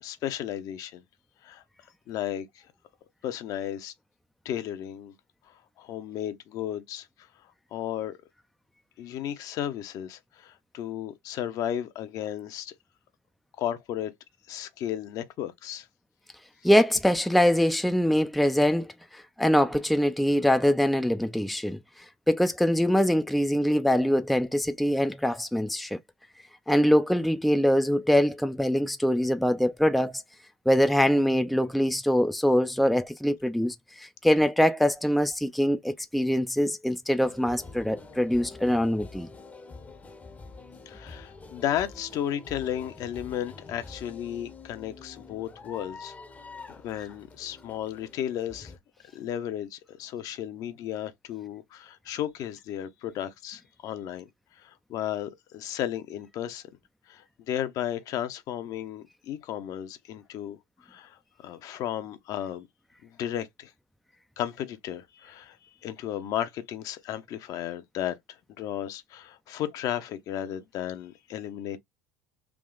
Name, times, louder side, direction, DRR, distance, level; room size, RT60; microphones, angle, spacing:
voice 1, 0.0-1.0 1.4-1.6 2.1-2.6 3.2-3.9 4.4-5.1 5.5-7.1 7.4-8.2 9.0-12.7 13.6-14.1 14.5-15.9 40.9-46.1 46.7-48.7 49.1-54.3 54.6-56.6 57.1-60.6 60.8-62.7 63.0-63.7 64.4-71.8, left 11 dB, 55° left, 0.8 m, -34 dB
voice 2, 16.6-21.8 22.3-26.0 26.7-30.2 30.7-39.3, equal, ahead, 0.4 m, -23 dB
sound 1, 37.2-48.8, left 3 dB, 20° left, 0.8 m, -46 dB
3.6 x 2.3 x 3.8 m
hypercardioid pair, 90°, 7 cm